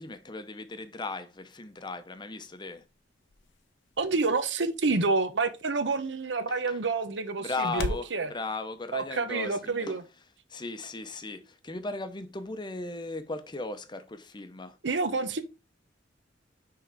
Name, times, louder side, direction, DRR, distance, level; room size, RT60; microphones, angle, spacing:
voice 1, 0.0-2.8 6.5-6.8 7.4-10.0 10.5-14.8, left 3 dB, 25° left, 0.7 m, -37 dB
sound 1, 1.9-8.2, left 3 dB, 75° left, 0.7 m, -43 dB
voice 2, 4.0-8.3 8.9-10.0 14.8-15.4, right 3 dB, 75° right, 0.9 m, -28 dB
6.0 x 3.8 x 4.5 m
head